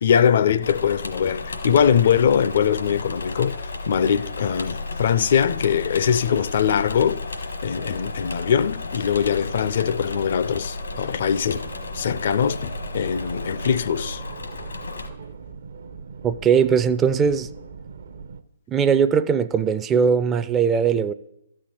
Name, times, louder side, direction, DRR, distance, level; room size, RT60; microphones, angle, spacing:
voice 1, 0.0-7.2 7.6-11.6 11.9-14.2, left 8 dB, 55° left, 0.4 m, -22 dB
Engine / Mechanisms, 0.6-15.1, left 3 dB, 85° left, 1.2 m, -33 dB
sound 1, 10.7-18.4, right 5 dB, 65° right, 0.6 m, -40 dB
voice 2, 16.2-17.5 18.7-21.1, right 6 dB, 15° right, 0.3 m, -20 dB
13.0 x 4.4 x 7.6 m
figure-of-eight pair, 135°, 0 cm